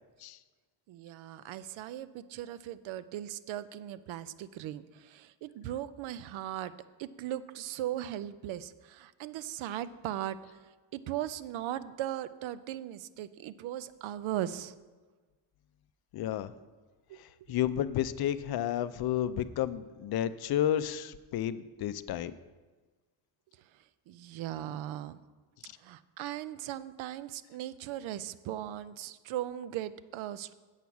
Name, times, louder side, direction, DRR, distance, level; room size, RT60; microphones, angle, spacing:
voice 1, 0.9-6.7 7.0-10.4 10.6-14.7 17.1-17.2 24.1-25.2 25.8-30.5, right 12 dB, 80° right, 15 dB, 0.6 m, -38 dB
voice 2, 16.1-16.5 17.5-22.3, left 11 dB, 55° left, 13 dB, 0.5 m, -31 dB
8.2 x 6.2 x 7.0 m, 1.3 s
cardioid pair, 150°, 47 cm